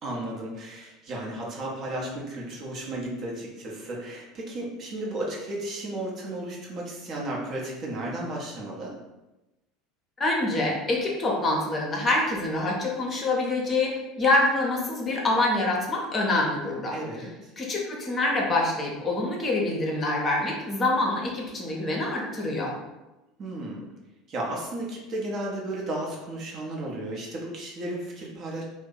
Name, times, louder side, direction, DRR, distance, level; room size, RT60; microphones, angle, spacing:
voice 1, 0.0-8.9 16.9-17.5 23.4-23.9 24.3-28.6, right 1 dB, 40° right, -3 dB, 0.8 m, -34 dB
voice 2, 10.2-16.9 17.6-22.7, left 2 dB, 25° left, -1 dB, 0.7 m, -26 dB
2.6 x 2.1 x 3.8 m, 1.0 s
figure-of-eight pair, 70°, 0 cm